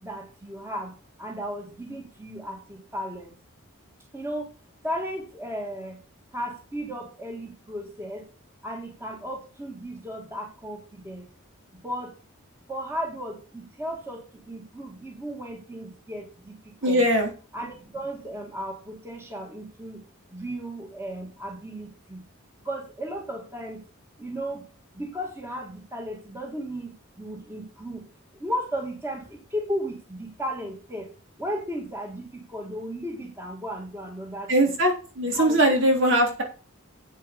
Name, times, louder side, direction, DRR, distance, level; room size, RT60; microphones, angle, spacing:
voice 1, 0.0-0.9 1.2-3.3 4.1-4.5 4.8-6.0 6.3-8.2 8.6-11.3 11.8-12.1 12.7-17.0 17.5-20.0 20.3-22.2 22.6-23.8 24.2-24.6 24.9-28.0 28.3-31.1 31.4-34.5 35.4-35.6, equal, 10° right, 1 dB, 2.1 m, -35 dB
voice 2, 16.8-17.3 34.5-36.4, right 1 dB, 60° right, 2 dB, 3.5 m, -21 dB
8.8 x 7.5 x 5.3 m, 0.37 s
head